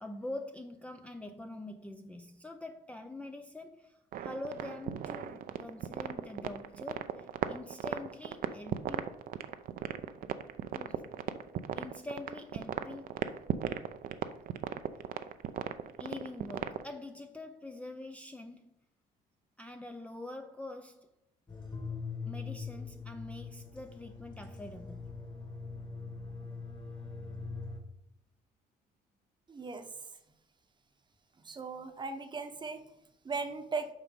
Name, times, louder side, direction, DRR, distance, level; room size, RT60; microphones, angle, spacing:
voice 1, 0.0-9.1 10.7-11.1 11.8-13.2 16.0-18.7 19.6-21.1 22.3-25.1, left 2 dB, 10° left, 6 dB, 0.5 m, -45 dB
sound 1, 4.1-16.9, right 10 dB, 55° right, 0.5 m, -36 dB
sound 2, 21.5-27.8, left 4 dB, 25° left, 1.7 m, -42 dB
voice 2, 29.5-29.9 31.5-32.8 33.2-33.9, right 4 dB, 25° right, 8 dB, 0.9 m, -37 dB
7.2 x 5.1 x 5.3 m, 0.84 s
cardioid pair, 110°, 17 cm